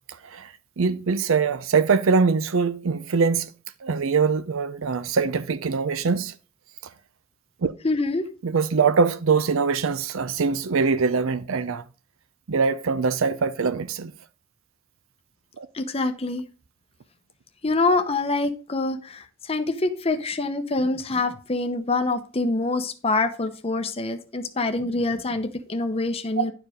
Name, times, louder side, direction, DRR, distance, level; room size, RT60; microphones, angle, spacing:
voice 1, 0.2-3.5 3.8-6.3 7.6-7.7 8.4-11.8 12.5-14.1 15.6-15.7 26.4-26.5, right 5 dB, 65° right, 0.5 m, -23 dB
voice 2, 7.8-8.2 15.7-16.4 17.6-26.5, left 3 dB, 30° left, 0.8 m, -25 dB
10.5 x 4.9 x 5.0 m
head